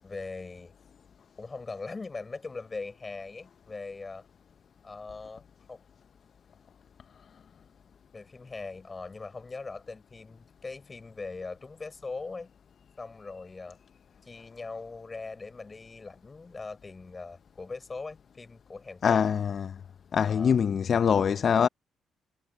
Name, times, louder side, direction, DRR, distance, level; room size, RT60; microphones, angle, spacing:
voice 1, 0.0-0.7 1.4-4.3 4.8-5.4 5.7-5.8 8.1-12.5 13.0-13.8 14.2-19.2 20.3-20.6, left 3 dB, 30° left, 5.9 m, -40 dB
voice 2, 19.0-19.8 20.1-21.7, left 7 dB, 55° left, 0.8 m, -24 dB
hypercardioid pair, 55°, 0 cm